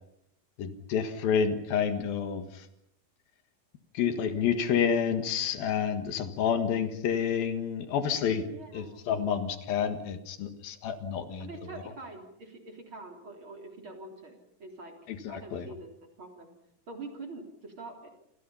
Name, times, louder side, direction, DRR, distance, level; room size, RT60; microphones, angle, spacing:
voice 1, 0.6-2.4 3.9-8.4 8.7-11.5 15.1-15.7, left 7 dB, 75° left, 8 dB, 3.4 m, -29 dB
voice 2, 8.5-9.1 11.4-15.0 15.3-16.5 16.9-18.1, right 2 dB, 35° right, 2 dB, 4.0 m, -45 dB
28.5 x 26.5 x 5.7 m, 0.80 s
omnidirectional pair, 4.2 m